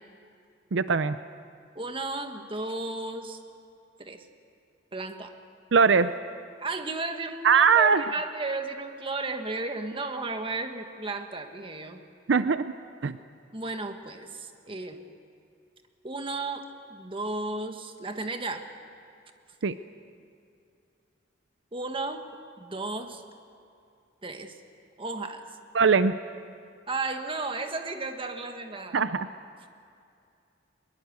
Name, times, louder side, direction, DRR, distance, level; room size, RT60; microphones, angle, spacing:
voice 1, 0.7-1.2 5.7-6.1 7.4-8.0 12.3-12.7 13.0-13.2 19.6-19.7 25.7-26.1 28.9-29.3, right 5 dB, 75° right, 12 dB, 0.6 m, -21 dB
voice 2, 1.7-3.4 4.0-4.2 4.9-5.3 6.6-12.0 13.5-15.0 16.0-18.7 21.7-22.3 22.6-23.2 24.2-24.6 25.0-25.4 26.9-29.1, right 3 dB, 30° right, 6 dB, 1.5 m, -34 dB
22.0 x 22.0 x 8.1 m, 2.5 s
head